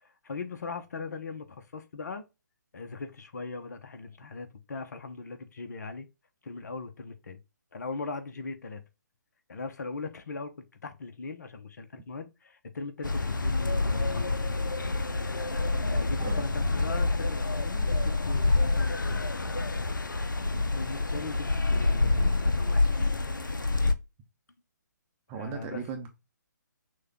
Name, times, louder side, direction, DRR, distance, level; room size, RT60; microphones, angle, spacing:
voice 1, 0.0-2.2 2.7-6.1 6.4-7.4 7.7-8.8 9.5-14.5 15.9-19.2 20.5-23.2 25.3-25.8, left 4 dB, 60° left, 0.9 m, -40 dB
sound 1, 13.0-23.9, left 3 dB, 85° left, 0.5 m, -27 dB
voice 2, 25.3-26.1, right 7 dB, 20° right, 0.7 m, -37 dB
6.4 x 2.3 x 3.5 m
figure-of-eight pair, 140°, 10 cm